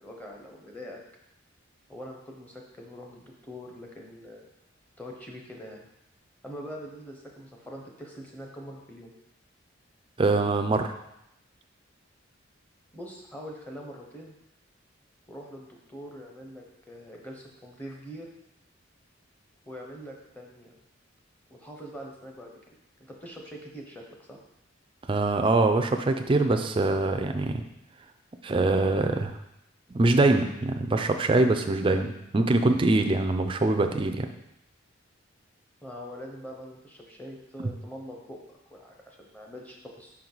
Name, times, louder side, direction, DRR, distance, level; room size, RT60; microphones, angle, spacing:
voice 1, 0.0-1.0 1.9-4.5 5.0-5.8 6.4-9.1 12.9-14.4 15.3-18.3 19.7-20.7 21.5-22.5 23.0-24.4 35.8-40.3, equal, 10° left, -1 dB, 0.8 m, -43 dB
voice 2, 10.2-10.9 25.1-27.6 28.4-29.3 29.9-34.3, right 2 dB, 25° right, 6 dB, 0.4 m, -23 dB
5.9 x 4.5 x 3.9 m, 0.84 s
head